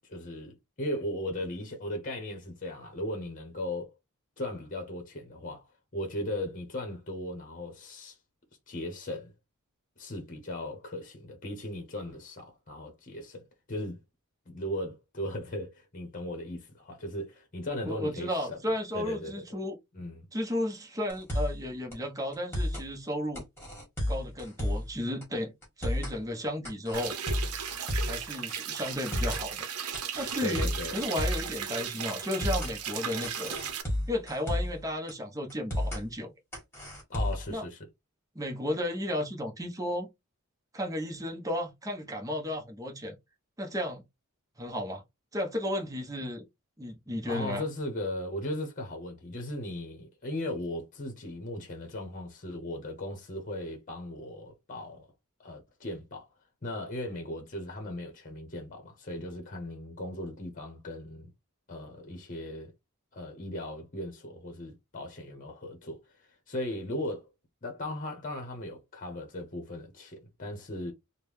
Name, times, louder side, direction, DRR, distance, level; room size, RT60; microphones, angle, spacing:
voice 1, 0.1-3.9 4.4-8.2 8.7-9.3 10.0-14.0 14.5-18.6 18.9-19.4 19.9-20.3 30.4-31.0 37.1-37.8 47.2-55.1 55.4-56.3 56.6-61.3 61.7-62.7 63.1-66.0 66.5-67.3 67.6-70.9, left 1 dB, 40° left, 0.9 m, -37 dB
voice 2, 17.7-19.8 20.3-23.4 24.1-25.5 25.8-27.2 28.0-29.6 30.2-33.6 34.1-36.3 37.5-37.6 38.3-40.1 40.7-43.1 43.6-44.0 44.6-45.0 45.3-46.4 46.8-47.6, left 1 dB, 15° right, 0.8 m, -33 dB
sound 1, 21.1-21.6 21.9-22.0 22.3-22.9 23.4-24.9 25.2-25.3 25.6-26.2 26.6-28.2 28.5-28.6 28.9-29.5 29.9-31.5 31.8-31.9 32.2-32.7 33.2-34.8 35.1-35.2 35.5-36.0 36.5-37.5, left 1 dB, 10° left, 1.7 m, -32 dB
sound 2, 26.9-33.8, right 7 dB, 90° right, 0.7 m, -36 dB
3.6 x 2.2 x 3.1 m
head